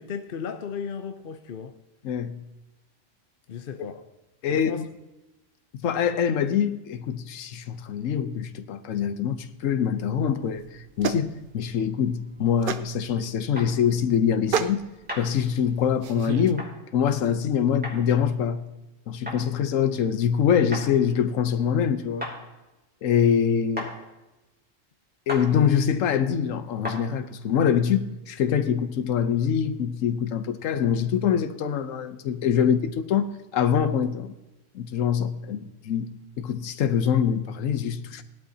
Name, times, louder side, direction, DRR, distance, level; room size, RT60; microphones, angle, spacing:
voice 1, 0.0-1.8 3.5-4.1 4.5-4.8, left 7 dB, 55° left, 0.7 m, -35 dB
voice 2, 2.0-2.4 4.4-4.8 5.8-14.9 15.2-16.6 16.9-18.6 19.1-22.3 23.0-23.9 25.3-34.3 34.7-36.1 36.4-38.2, left 8 dB, 80° left, 1.1 m, -24 dB
sound 1, 10.4-16.5, right 6 dB, 55° right, 0.7 m, -33 dB
sound 2, 13.6-13.7 15.1-15.3 16.6-16.7 17.8-18.0 19.2-19.4 20.7-20.9 22.2-22.4 23.8-23.9 25.3-25.5 26.8-27.0, left 1 dB, 5° right, 2.7 m, -33 dB
18.0 x 12.0 x 2.8 m
omnidirectional pair, 1.3 m